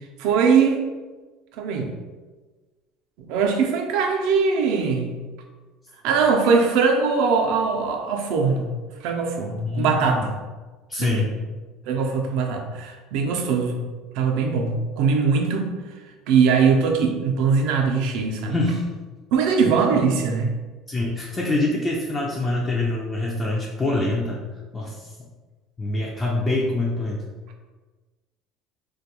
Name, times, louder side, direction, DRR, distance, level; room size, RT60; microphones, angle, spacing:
voice 1, 0.2-0.8 1.6-1.9 3.3-5.1 6.0-8.6 9.0-10.3 11.0-11.3 11.9-13.8 14.1-15.7 16.3-18.6 19.3-20.5, right 5 dB, 75° right, 2 dB, 0.4 m, -21 dB
voice 2, 9.6-10.2 10.9-11.4 18.5-18.9 20.9-24.4 24.7-25.1 25.8-27.2, left 2 dB, 20° left, -3 dB, 0.3 m, -25 dB
2.2 x 2.2 x 2.8 m, 1.3 s
cardioid pair, 120°, 0 cm